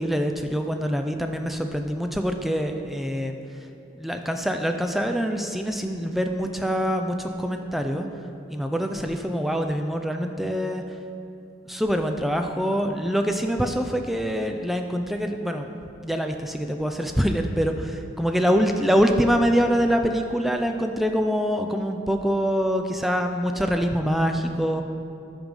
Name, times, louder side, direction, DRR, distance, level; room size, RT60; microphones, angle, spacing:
voice 1, 0.0-3.4 3.9-8.1 8.5-10.9 11.7-15.7 16.0-24.8, equal, ahead, 5 dB, 0.3 m, -25 dB
8.9 x 5.2 x 5.4 m, 2.7 s
head